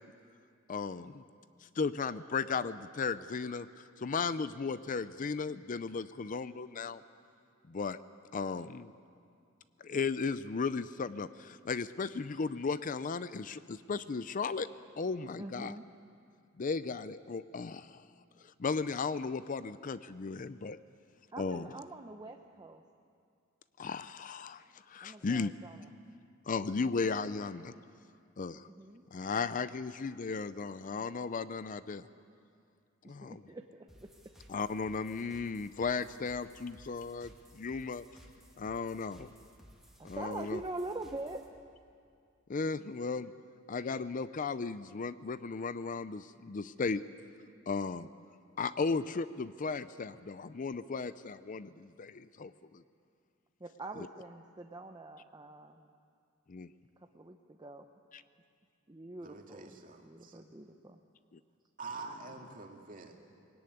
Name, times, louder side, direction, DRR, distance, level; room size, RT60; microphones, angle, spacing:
voice 1, 0.7-1.2 1.6-7.0 7.7-8.0 8.3-8.9 9.8-14.7 15.0-15.7 16.6-18.1 18.4-20.8 21.4-21.7 23.8-25.5 26.5-27.7 28.4-28.7 29.1-32.0 33.0-33.4 34.5-38.0 38.6-39.3 40.0-40.6 42.5-43.3 43.7-47.0 47.7-48.1 48.6-52.8 56.5-56.7, left 4 dB, 40° left, 14 dB, 0.5 m, -35 dB
voice 2, 15.4-15.9 21.3-22.8 25.0-25.9 28.5-29.0 33.0-34.1 40.0-41.4 53.6-55.9 57.0-57.9 58.9-59.7 60.0-61.0, right 2 dB, 20° right, 4 dB, 0.7 m, -44 dB
sound 1, 33.9-41.5, equal, ahead, 2.1 m, -58 dB
voice 3, 59.2-60.4 61.8-63.2, right 3 dB, 40° right, 2 dB, 2.3 m, -46 dB
21.0 x 17.5 x 9.4 m, 2.4 s
head